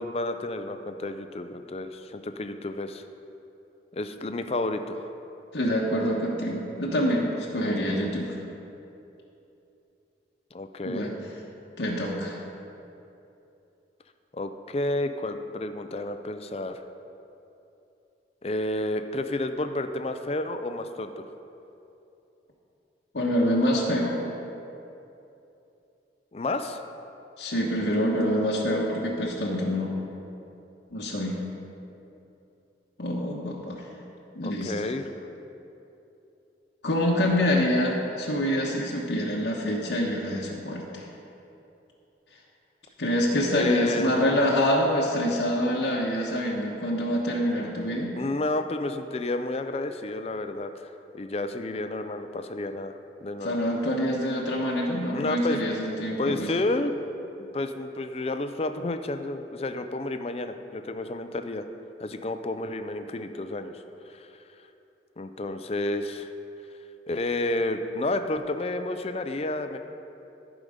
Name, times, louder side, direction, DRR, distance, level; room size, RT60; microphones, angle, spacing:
voice 1, 0.0-3.0 3.9-5.1 10.5-11.1 14.3-16.8 18.4-21.2 26.3-26.8 34.4-35.0 43.5-44.1 48.2-52.9 53.2-53.6 55.1-55.6 56.2-56.9 57.5-61.6 62.0-64.3 65.2-66.3 67.1-69.8, left 2 dB, 35° left, 8 dB, 0.5 m, -30 dB
voice 2, 5.5-7.3 7.5-8.3 10.8-11.2 11.8-12.4 23.1-24.2 27.4-29.9 30.9-31.4 33.0-33.8 34.3-34.7 36.8-41.0 43.0-48.1 53.4-56.5, equal, 85° left, -3 dB, 1.2 m, -26 dB
14.5 x 5.0 x 5.1 m, 2.9 s
head